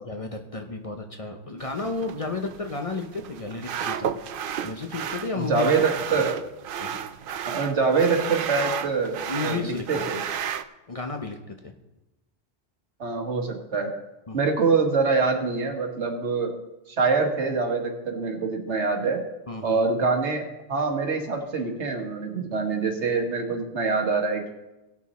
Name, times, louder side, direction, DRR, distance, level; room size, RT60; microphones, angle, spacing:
voice 1, 0.0-4.1 4.6-5.8 6.1-6.2 6.8-7.0 9.3-9.9 10.9-11.7 14.3-14.4 19.5-19.8, left 3 dB, 35° left, 4 dB, 0.7 m, -32 dB
sound 1, 1.6-10.6, right 8 dB, 60° right, 0.6 m, -33 dB
voice 2, 5.4-6.4 7.5-10.2 13.0-13.9 14.3-16.6 16.9-19.2 19.6-24.5, right 4 dB, 80° right, 4 dB, 1.6 m, -25 dB
17.5 x 6.3 x 4.1 m, 1.0 s
omnidirectional pair, 1.2 m